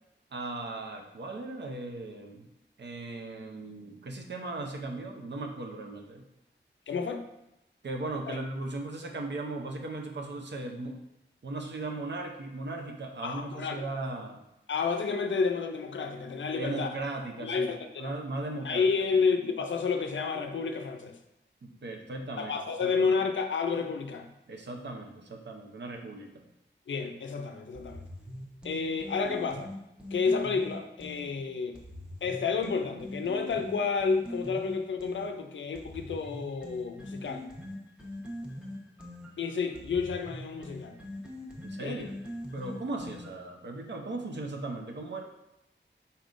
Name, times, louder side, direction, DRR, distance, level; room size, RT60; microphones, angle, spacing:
voice 1, 0.3-2.5 2.8-6.2 7.8-11.0 11.4-14.4 16.6-17.7 18.0-18.8 21.6-22.5 22.8-23.1 24.5-26.3 41.6-42.1 42.5-45.2, right 2 dB, 65° right, 2 dB, 0.6 m, -37 dB
voice 2, 6.9-7.2 13.2-13.8 14.7-16.9 17.4-18.1 18.6-21.2 22.4-24.3 26.9-28.0 28.6-29.7 30.1-31.8 32.2-37.5 39.4-41.0 41.8-42.1, left 5 dB, 75° left, 6 dB, 0.4 m, -30 dB
sound 1, 27.7-31.3 31.7-35.3 35.7-43.5, left 1 dB, 5° right, 0.9 m, -42 dB
4.1 x 3.5 x 2.5 m, 0.90 s
wide cardioid pair, 80°, 20 cm